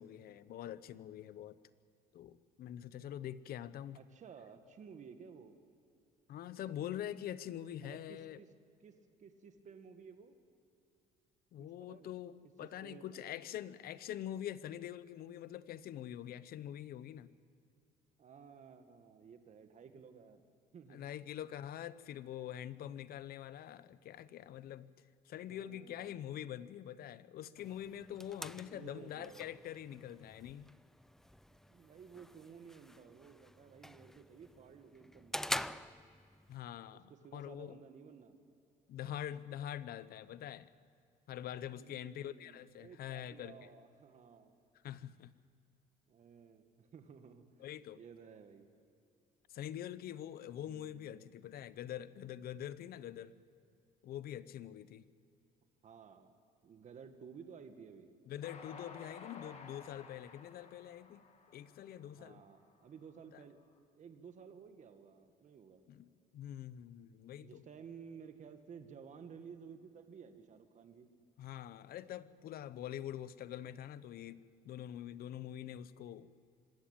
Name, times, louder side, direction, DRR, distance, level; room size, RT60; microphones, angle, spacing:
voice 1, 0.0-1.6 2.1-4.0 6.3-8.4 11.5-17.3 20.9-24.9 25.2-30.7 36.5-37.8 38.9-40.7 41.3-43.7 44.8-45.3 47.6-48.0 49.5-53.3 54.0-55.1 58.3-61.2 61.5-62.4 63.3-63.4 65.9-67.6 71.4-76.3, left 11 dB, 65° left, 16 dB, 0.8 m, -45 dB
voice 2, 3.9-5.6 7.8-8.5 8.8-10.4 11.6-12.1 12.6-13.4 18.2-20.4 20.7-21.1 25.5-26.3 28.5-29.5 31.5-35.8 36.9-38.4 41.7-44.6 46.1-47.5 47.9-48.7 50.6-51.3 55.8-56.4 56.6-58.1 62.0-63.6 64.0-65.8 67.4-71.1, right 6 dB, 45° right, 7 dB, 1.7 m, -55 dB
sound 1, 27.6-36.6, left 1 dB, ahead, 0.4 m, -46 dB
Train, 58.4-62.8, left 4 dB, 40° left, 2.3 m, -54 dB
25.5 x 13.0 x 8.9 m, 2.5 s
cardioid pair, 110°, 17 cm